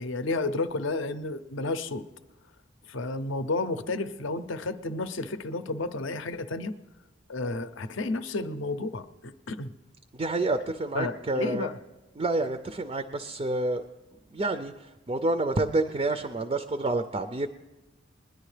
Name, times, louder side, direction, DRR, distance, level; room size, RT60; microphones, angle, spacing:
voice 1, 0.0-2.1 2.9-6.7 7.3-9.7 10.9-11.8, left 2 dB, 65° left, 12 dB, 0.6 m, -31 dB
voice 2, 10.1-11.7 12.2-13.8 14.3-17.5, right 2 dB, 25° right, 9 dB, 0.4 m, -28 dB
21.5 x 10.5 x 3.3 m, 1.1 s
head